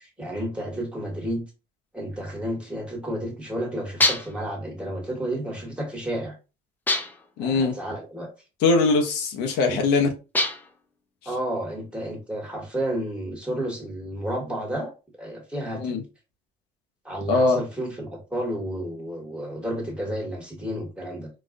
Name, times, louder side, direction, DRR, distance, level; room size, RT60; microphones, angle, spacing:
voice 1, 0.0-1.4 1.9-6.3 7.4-8.3 9.7-9.8 11.2-14.9 15.2-15.9 17.0-21.3, right 1 dB, 5° right, 1.3 m, -31 dB
sound 1, 4.0-4.5 6.9-7.3 10.3-10.8, left 2 dB, 10° left, 0.5 m, -24 dB
voice 2, 7.4-7.8 8.6-10.1 15.7-16.0 17.3-17.6, left 3 dB, 90° left, 0.8 m, -21 dB
4.0 x 2.3 x 2.5 m
cardioid pair, 110°, 17 cm